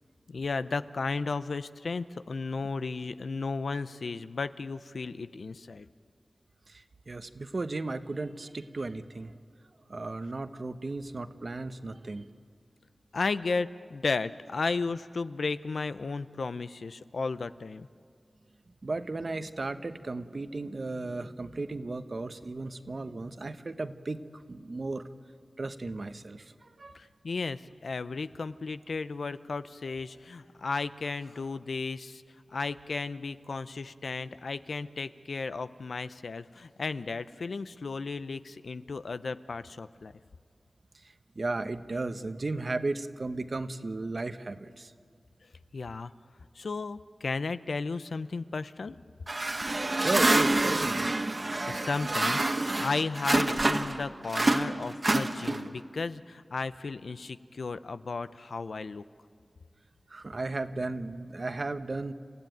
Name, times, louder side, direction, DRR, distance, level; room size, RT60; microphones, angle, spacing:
voice 1, 0.3-5.9 13.1-17.9 26.9-32.2 32.5-40.1 45.7-46.1 46.6-49.0 51.5-59.0, left 4 dB, 80° left, 13 dB, 0.6 m, -34 dB
voice 2, 6.7-9.3 9.9-12.3 18.8-25.0 25.6-27.0 40.9-44.9 49.9-51.1 60.1-62.1, right 3 dB, 55° right, 10 dB, 1.0 m, -35 dB
sound 1, 49.3-54.0 54.3-55.8, right 2 dB, 40° right, 1.3 m, -27 dB
29.5 x 15.5 x 9.3 m, 2.2 s
wide cardioid pair, 65°, 0 cm